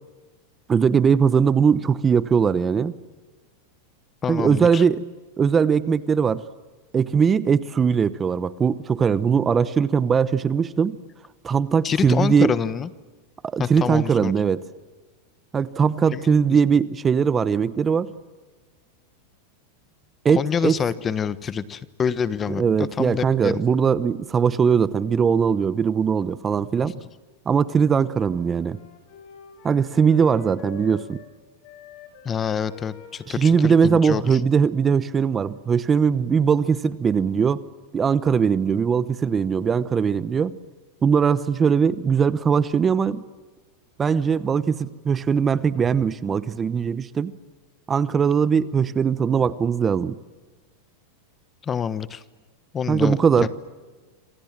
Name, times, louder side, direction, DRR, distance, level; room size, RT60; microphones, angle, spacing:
voice 1, 0.7-2.9 4.3-5.0 5.4-6.4 6.9-11.0 11.4-12.5 13.4-14.6 15.5-18.1 20.2-20.8 22.5-27.0 27.5-28.8 29.6-31.2 33.3-37.6 37.9-40.6 41.0-43.2 44.0-47.3 47.9-50.2 52.9-53.5, right 6 dB, 20° right, 16 dB, 0.9 m, -20 dB
voice 2, 4.2-4.8 11.8-12.9 13.6-14.3 16.1-16.6 20.3-22.6 23.0-23.6 26.8-26.9 32.2-34.4 51.6-52.2 52.7-53.5, left 7 dB, 25° left, 16 dB, 1.2 m, -27 dB
Wind instrument woodwind instrument, 27.6-31.3 31.6-35.7, left 5 dB, 55° left, 7.4 m, -46 dB
27.5 x 27.0 x 7.5 m, 1.3 s
supercardioid pair, 130°, 0 cm